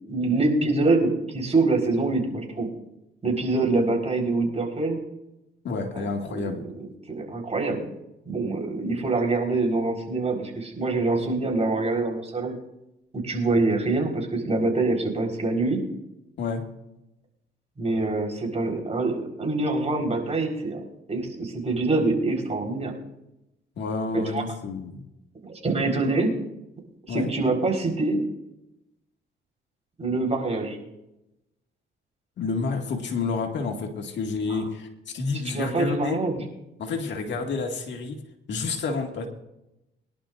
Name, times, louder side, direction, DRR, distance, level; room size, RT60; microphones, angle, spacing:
voice 1, 0.1-2.7 3.2-5.0 6.3-6.5 6.8-7.9 8.3-12.6 13.1-15.8 17.8-20.8 21.1-22.9 24.1-24.4 25.4-26.3 27.1-28.2 30.0-30.8 34.5-34.6 35.5-36.4, right 3 dB, 35° right, 1 dB, 4.4 m, -25 dB
voice 2, 5.6-6.6 16.4-16.6 23.8-25.0 27.1-27.3 32.4-36.2 36.8-38.2 38.5-39.3, left 4 dB, 65° left, 3 dB, 2.1 m, -29 dB
23.0 x 11.5 x 2.6 m, 0.88 s
cardioid pair, 90°, 20 cm